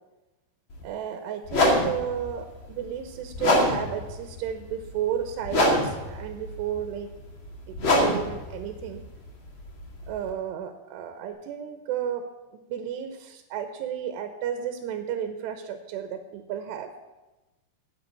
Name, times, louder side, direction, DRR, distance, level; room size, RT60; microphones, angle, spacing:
sound 1, 0.7-0.8 1.5-10.3, left 1 dB, 35° left, 2.3 m, -26 dB
voice 1, 0.8-7.1 7.7-9.0 10.1-12.2 12.5-16.9, right 9 dB, 85° right, 7 dB, 3.0 m, -33 dB
9.9 x 8.8 x 8.3 m, 1.1 s
omnidirectional pair, 4.7 m